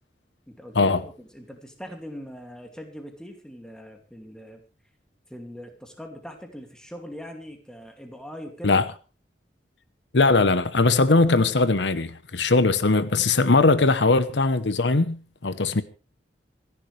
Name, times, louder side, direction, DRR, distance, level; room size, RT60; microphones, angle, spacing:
voice 1, 0.5-4.6 5.3-8.8, equal, 5° left, 2.4 m, -41 dB
voice 2, 10.1-15.8, left 3 dB, 85° left, 0.9 m, -20 dB
26.0 x 11.0 x 3.3 m
head